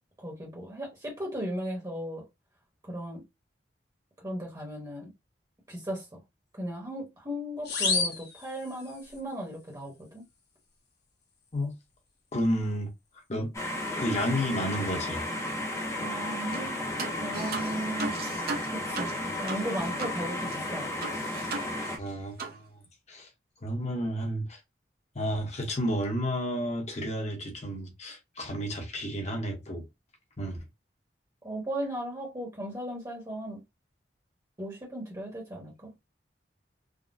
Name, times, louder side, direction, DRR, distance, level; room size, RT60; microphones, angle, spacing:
voice 1, 0.2-2.2 2.8-3.2 4.2-5.1 5.7-6.1 6.5-10.2 16.0-16.8 17.2-18.2 18.7-21.0 31.4-33.6 34.6-35.9, right 1 dB, 20° right, 1.0 m, -36 dB
sound 1, 7.6-9.2, left 4 dB, 65° left, 1.1 m, -30 dB
voice 2, 12.3-12.9 13.3-13.5 14.0-15.2 22.0-22.8 23.1-23.3 23.6-24.6 25.1-29.8 30.4-30.6, equal, 40° left, 0.9 m, -31 dB
sound 2, 13.5-22.0, left 1 dB, 15° left, 0.6 m, -33 dB
sound 3, 16.5-16.7 17.0-20.2 20.5-20.6 21.0-22.1 22.4-22.6, right 3 dB, 55° right, 0.7 m, -37 dB
3.5 x 2.1 x 2.5 m
head